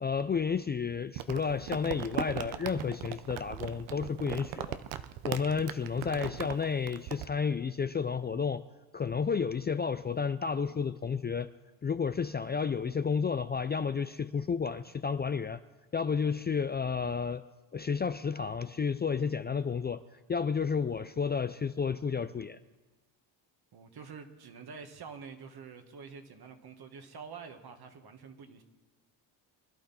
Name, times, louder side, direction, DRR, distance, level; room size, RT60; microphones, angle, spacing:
voice 1, 0.0-4.8 5.2-8.6 8.9-11.5 11.8-15.6 15.9-17.4 17.7-20.0 20.3-22.6, left 6 dB, 25° left, 11 dB, 0.4 m, -31 dB
Crumpling crinkling, 1.2-7.3, right 11 dB, 85° right, 0.8 m, -39 dB
voice 2, 23.7-28.6, right 5 dB, 55° right, 6 dB, 1.9 m, -47 dB
24.0 x 11.5 x 4.3 m, 1.2 s
supercardioid pair, 75°, 46 cm